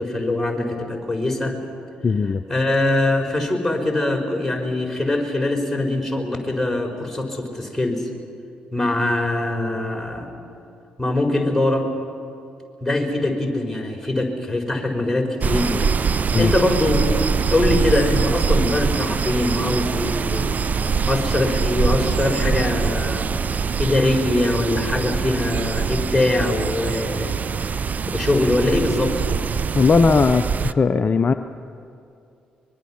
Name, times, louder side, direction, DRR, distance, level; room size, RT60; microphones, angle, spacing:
voice 1, 0.0-1.6 2.5-8.1 8.7-10.3 11.0-11.9 12.8-20.6 21.1-23.4 23.8-27.4 28.1-29.5, left 2 dB, 5° left, 1 dB, 4.7 m, -22 dB
voice 2, 2.0-2.4 16.3-16.5 29.7-31.3, left 4 dB, 40° left, 9 dB, 0.6 m, -18 dB
sound 1, 15.4-30.7, right 5 dB, 45° right, 0.6 m, -23 dB
24.0 x 22.0 x 5.8 m, 2.6 s
hypercardioid pair, 40°, 4 cm